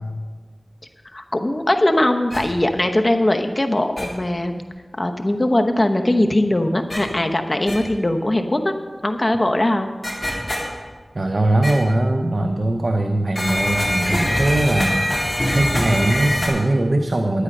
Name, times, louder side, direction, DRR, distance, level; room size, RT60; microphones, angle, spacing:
voice 1, 1.1-4.6 5.0-8.7 9.0-9.9, left 1 dB, 40° left, 5 dB, 0.9 m, -20 dB
sound 1, 2.3-2.4 4.0-4.1 6.9-7.0 7.7-7.8 10.0-10.6 11.6-11.7 13.4-16.5, left 1 dB, 25° left, 3.8 m, -22 dB
voice 2, 11.1-17.4, right 1 dB, 70° right, 4 dB, 0.7 m, -20 dB
11.5 x 9.5 x 5.4 m, 1.4 s
wide cardioid pair, 55°, 0 cm